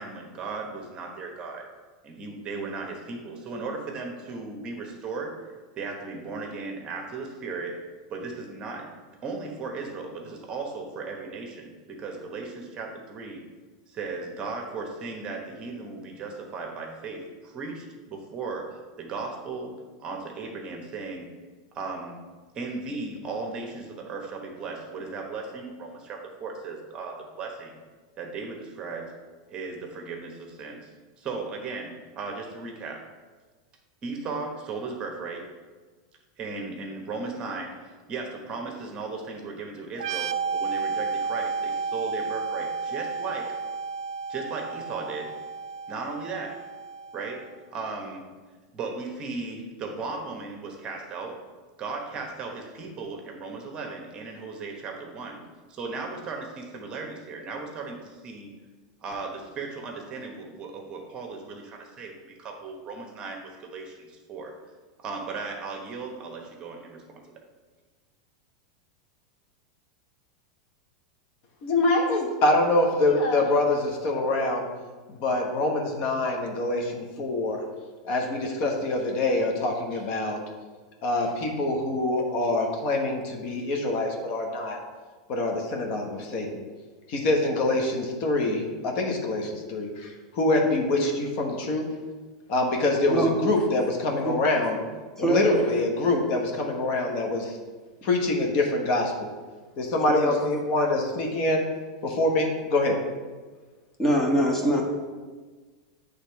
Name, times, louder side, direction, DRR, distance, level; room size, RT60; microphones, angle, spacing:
voice 1, 0.0-1.7 2.0-7.8 8.1-8.9 9.2-13.4 13.9-21.4 21.7-22.2 22.5-27.8 28.2-29.1 29.5-30.9 31.2-33.1 34.0-35.5 36.4-43.5 44.3-45.3 45.9-46.6 47.1-48.3 48.7-51.4 51.8-55.4 55.7-58.6 59.0-64.6 65.0-67.4, right 4 dB, 30° right, 2 dB, 1.0 m, -36 dB
sound 1, 39.9-47.5, right 5 dB, 75° right, 0.3 m, -32 dB
voice 2, 71.6-74.7 75.1-77.6 78.0-80.4 81.0-84.8 85.3-86.6 87.1-91.9 92.5-94.8 95.2-97.6 98.0-99.3 99.8-101.6 102.0-103.0, left 2 dB, 50° left, 2 dB, 1.2 m, -25 dB
voice 3, 93.1-93.5 94.2-94.3 95.2-95.6 100.1-100.3 104.0-104.8, right 1 dB, 15° left, 0 dB, 1.2 m, -23 dB
8.1 x 3.4 x 4.6 m, 1.4 s
supercardioid pair, 130°, 3 cm